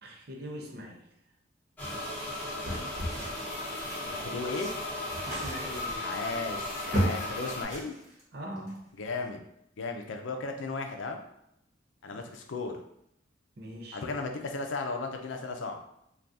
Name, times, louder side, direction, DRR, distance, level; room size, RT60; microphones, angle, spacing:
voice 1, 0.0-1.0 5.3-6.1 8.3-8.8 12.1-12.2 13.6-14.0, equal, 60° right, 0 dB, 0.6 m, -42 dB
sound 1, 1.8-7.6, left 1 dB, 10° left, 1.0 m, -36 dB
sound 2, 2.6-4.0 4.4-7.3 7.6-8.2 8.6-8.8, equal, 40° right, 1.1 m, -34 dB
voice 2, 4.1-4.7 6.0-7.9 8.9-9.4 9.8-11.2 12.0-12.8 13.9-15.8, left 3 dB, 90° left, 4 dB, 0.5 m, -35 dB
2.7 x 2.3 x 3.5 m, 0.76 s
head